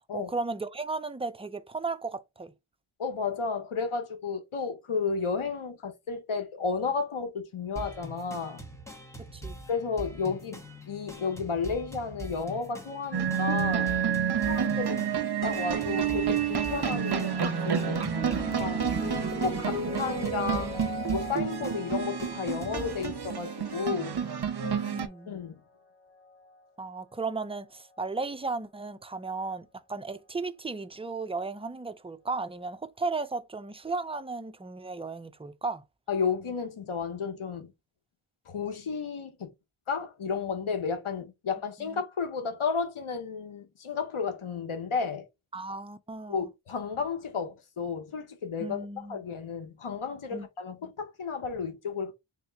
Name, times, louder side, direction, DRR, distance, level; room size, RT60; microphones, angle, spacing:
voice 1, 0.1-2.5 9.2-9.6 18.9-19.7 24.6-25.3 26.8-35.8 41.8-42.0 45.5-46.5 48.6-49.2 50.3-50.4, right 3 dB, 15° right, 0.4 m, -35 dB
voice 2, 3.0-8.6 9.7-14.0 14.4-15.0 15.4-18.1 18.5-18.8 19.4-20.8 21.1-24.2 25.3-25.6 36.1-37.7 38.5-39.5 39.9-45.3 46.3-52.1, left 5 dB, 90° left, 1.0 m, -32 dB
sound 1, 7.8-23.3, right 1 dB, 5° left, 1.0 m, -43 dB
sound 2, 13.1-25.1, right 8 dB, 55° right, 0.8 m, -29 dB
sound 3, 16.7-25.3 26.2-26.6, left 2 dB, 25° left, 2.6 m, -41 dB
3.6 x 2.9 x 3.3 m
wide cardioid pair, 60°, 48 cm